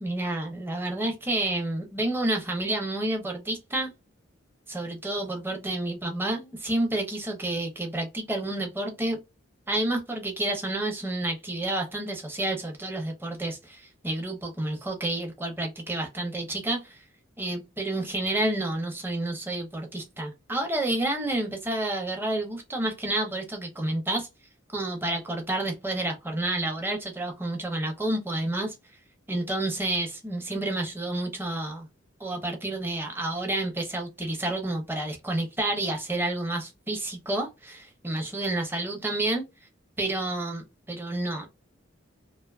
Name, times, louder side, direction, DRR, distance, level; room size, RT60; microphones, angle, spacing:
voice 1, 0.0-3.9 4.7-9.2 9.7-17.0 17.4-24.3 24.7-28.7 29.3-31.9 32.2-39.4 40.0-41.5, right 1 dB, 10° right, 0.5 m, -29 dB
2.5 x 2.3 x 2.3 m
head